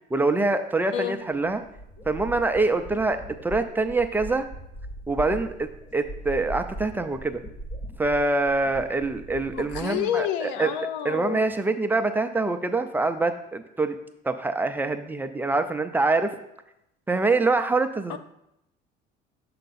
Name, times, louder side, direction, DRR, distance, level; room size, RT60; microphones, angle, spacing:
voice 1, 0.1-1.6 2.1-4.5 5.1-7.4 8.0-10.7 11.0-14.0 14.2-16.3 17.1-18.2, right 3 dB, 10° right, 7 dB, 0.4 m, -25 dB
sound 1, 1.0-1.1 1.3-9.8, right 1 dB, 25° left, 0.7 m, -40 dB
voice 2, 9.5-11.5 18.1-18.2, left 10 dB, 85° left, 11 dB, 0.6 m, -29 dB
6.6 x 4.5 x 4.1 m, 0.82 s
cardioid pair, 135°, 18 cm